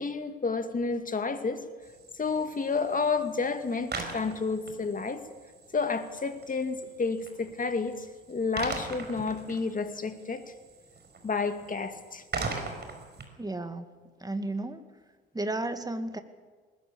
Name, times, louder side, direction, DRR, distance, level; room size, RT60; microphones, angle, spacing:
voice 1, 0.0-1.6 2.2-5.2 5.7-10.5 11.2-12.2, left 4 dB, 25° left, 8 dB, 2.2 m, -30 dB
sound 1, 1.8-13.3, right 3 dB, 35° right, 5.2 m, -41 dB
voice 2, 13.4-13.9 14.2-14.8 15.3-16.2, right 2 dB, 10° right, 8 dB, 2.1 m, -33 dB
20.5 x 20.0 x 7.1 m, 1.4 s
hypercardioid pair, 55°, 30 cm